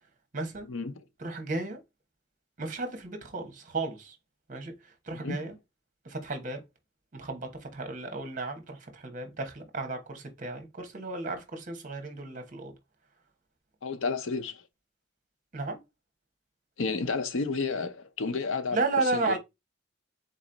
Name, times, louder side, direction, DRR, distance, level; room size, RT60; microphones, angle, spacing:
voice 1, 0.3-0.7 1.2-1.8 2.6-4.1 4.5-4.7 5.1-5.5 6.0-6.6 7.1-12.7 15.5-15.8 18.7-19.4, right 3 dB, 40° right, 1.1 m, -33 dB
voice 2, 13.8-14.6 16.8-18.8 19.1-19.4, left 4 dB, 90° left, 0.7 m, -31 dB
4.0 x 3.1 x 3.8 m
head